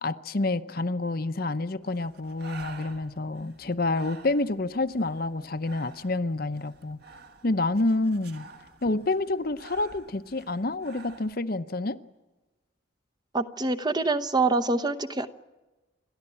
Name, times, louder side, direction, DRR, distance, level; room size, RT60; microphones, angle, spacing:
voice 1, 0.0-7.0 7.4-8.5 8.8-12.0, left 2 dB, 45° left, 0.8 m, -28 dB
Breathing, 1.8-11.3, right 3 dB, 50° right, 2.0 m, -49 dB
voice 2, 13.3-15.3, right 3 dB, 20° right, 0.8 m, -25 dB
29.0 x 13.0 x 9.9 m
head